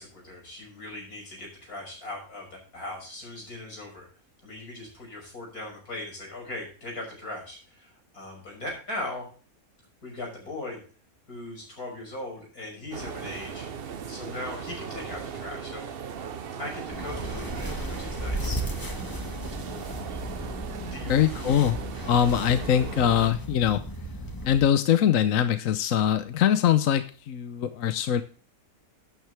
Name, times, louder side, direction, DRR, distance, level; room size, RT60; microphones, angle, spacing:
voice 1, 0.0-4.1 4.4-9.3 10.0-10.8 11.3-13.7 14.1-15.9 16.6-18.6 20.9-21.1, left 2 dB, 90° left, 0 dB, 6.4 m, -39 dB
sound 1, 12.9-23.3, right 7 dB, 50° right, 0.9 m, -38 dB
sound 2, 16.9-24.7, equal, 15° left, 1.6 m, -35 dB
voice 2, 21.1-23.8 24.4-28.2, left 9 dB, 70° left, 11 dB, 1.1 m, -23 dB
12.0 x 9.3 x 3.3 m, 0.39 s
omnidirectional pair, 1.5 m